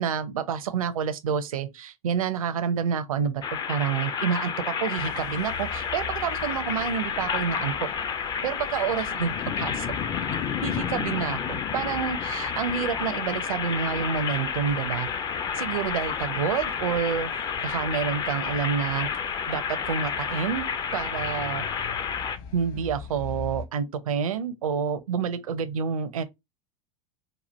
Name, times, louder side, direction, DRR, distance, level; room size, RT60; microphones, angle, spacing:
voice 1, 0.0-7.9 8.4-9.9 10.3-15.1 15.5-17.3 17.6-19.1 19.5-20.6 20.9-21.7 22.5-26.2, right 7 dB, 65° right, 0.6 m, -28 dB
sound 1, 3.4-22.4, left 7 dB, 20° left, 0.4 m, -30 dB
sound 2, 5.0-23.7, left 6 dB, 45° left, 1.0 m, -44 dB
4.2 x 2.4 x 3.2 m
figure-of-eight pair, 85°, 19 cm